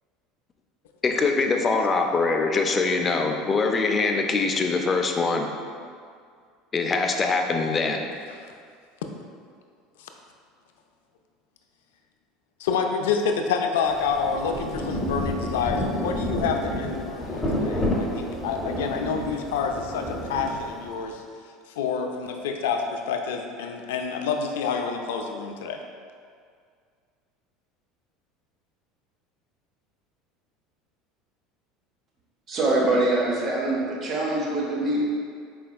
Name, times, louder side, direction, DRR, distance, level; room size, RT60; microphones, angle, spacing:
voice 1, 1.0-5.5 6.7-8.1, left 4 dB, 25° left, 3 dB, 0.4 m, -23 dB
voice 2, 12.6-21.2 21.8-25.8, left 5 dB, 90° left, 4 dB, 0.4 m, -28 dB
Rain, 13.9-21.1, equal, 5° left, 0.8 m, -30 dB
voice 3, 32.5-35.2, right 2 dB, 40° right, -3 dB, 0.8 m, -24 dB
4.3 x 4.1 x 2.3 m, 2.1 s
supercardioid pair, 110°, 0 cm